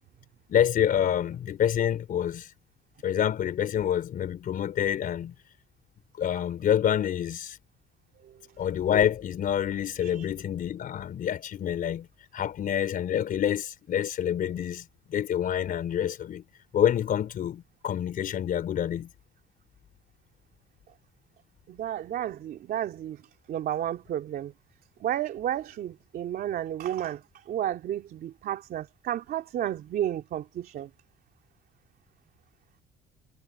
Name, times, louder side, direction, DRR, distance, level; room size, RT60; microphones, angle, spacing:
voice 1, 0.5-2.5 3.0-5.3 6.2-7.6 8.6-12.1 12.3-16.4 16.7-19.1, left 10 dB, 55° left, 4.6 m, -27 dB
voice 2, 21.7-23.2 23.5-24.5 25.0-30.9, right 11 dB, 60° right, 3.2 m, -32 dB
cardioid pair, 110°, 17 cm